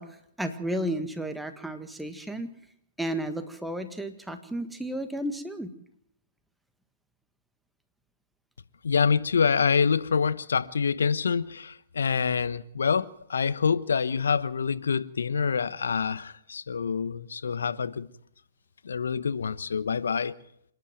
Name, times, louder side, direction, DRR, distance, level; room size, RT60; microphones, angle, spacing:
voice 1, 0.0-2.5 3.0-5.7, right 1 dB, 5° right, 1.6 m, -33 dB
voice 2, 8.8-18.1 18.8-20.3, left 6 dB, 75° left, 1.0 m, -26 dB
26.5 x 11.0 x 9.2 m
hypercardioid pair, 125°, 0 cm